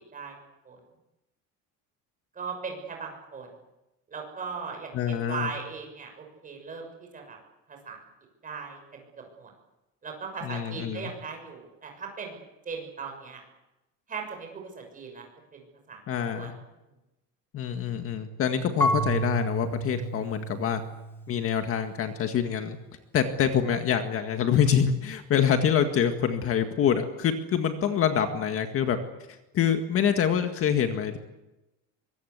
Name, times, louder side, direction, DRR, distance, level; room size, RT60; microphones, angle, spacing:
voice 1, 2.3-3.5 4.1-7.4 7.7-8.0 8.4-9.5 10.0-12.4 12.6-13.4 14.1-15.3 15.5-16.0 16.3-16.5, right 5 dB, 25° right, 2 dB, 6.6 m, -38 dB
voice 2, 4.9-5.5 10.4-11.1 16.1-16.5 17.5-20.8 21.3-22.8 23.1-29.0 29.5-31.2, left 8 dB, 40° left, 6 dB, 1.9 m, -26 dB
Marimba xylophone / Wood, 18.8-21.7, right 1 dB, 5° left, 2.6 m, -30 dB
24.0 x 22.5 x 8.3 m, 0.99 s
cardioid pair, 165°, 34 cm